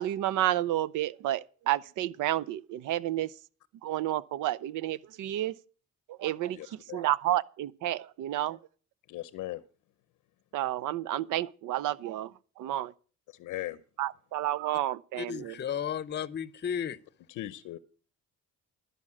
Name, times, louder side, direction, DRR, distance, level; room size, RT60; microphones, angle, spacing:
voice 1, 0.0-3.3 3.8-5.5 6.1-8.6 10.5-12.3 12.6-12.9 14.0-15.6, right 13 dB, 85° right, 0.6 m, -30 dB
voice 2, 6.5-7.1 9.1-9.6 13.3-13.8 17.3-17.8, left 15 dB, 85° left, 0.7 m, -39 dB
voice 3, 15.2-17.0, left 8 dB, 35° left, 0.7 m, -33 dB
13.0 x 5.2 x 8.5 m
cardioid pair, 90°, 30 cm